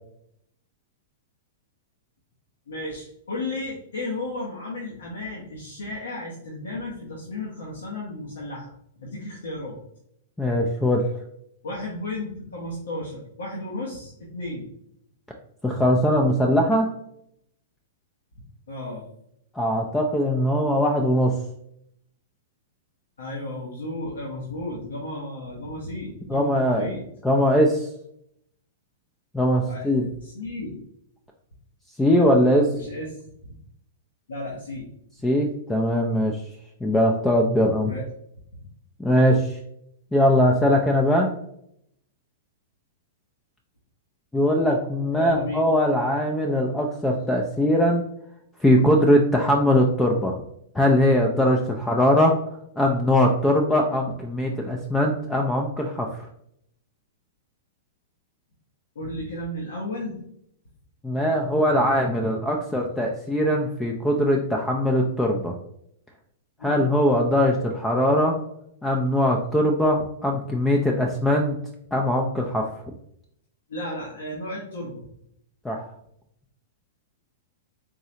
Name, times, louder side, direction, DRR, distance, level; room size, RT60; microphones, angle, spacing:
voice 1, 2.7-9.8 11.6-14.7 18.7-19.0 23.2-27.0 29.7-30.8 32.7-33.1 34.3-34.9 37.8-38.0 45.1-45.6 58.9-60.2 66.6-66.9 73.7-75.0, left 1 dB, 80° left, -4 dB, 0.9 m, -34 dB
voice 2, 10.4-11.0 15.6-16.9 19.5-21.3 26.3-26.9 27.2-27.9 29.3-30.0 32.0-32.7 35.2-36.4 36.8-37.9 39.0-39.6 40.1-41.3 44.3-48.0 48.6-50.3 50.7-52.3 52.8-56.3 61.0-65.5 66.6-68.3 68.8-71.6 71.9-72.7 75.6-75.8, equal, 10° left, 0 dB, 0.4 m, -21 dB
3.7 x 3.1 x 2.8 m, 0.73 s
hypercardioid pair, 120°, 0 cm